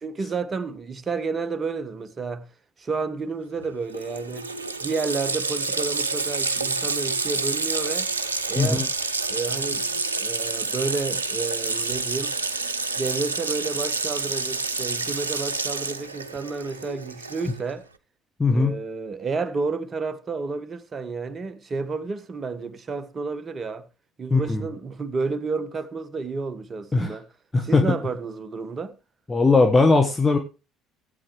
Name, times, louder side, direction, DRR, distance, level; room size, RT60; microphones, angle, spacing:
voice 1, 0.0-2.5 2.8-4.5 4.8-8.1 8.5-8.9 9.3-12.4 13.0-17.9 18.5-23.9 24.2-27.3 27.6-28.9, right 4 dB, 35° right, 1.1 m, -31 dB
Water tap faucet, 3.6-3.7 3.9-17.7, right 4 dB, 90° right, 0.5 m, -28 dB
voice 2, 8.6-8.9 18.4-18.8 24.3-24.7 26.9-27.1 27.5-27.8 29.3-30.4, left 3 dB, 20° left, 1.3 m, -19 dB
16.0 x 8.4 x 3.1 m
figure-of-eight pair, 55°, 0 cm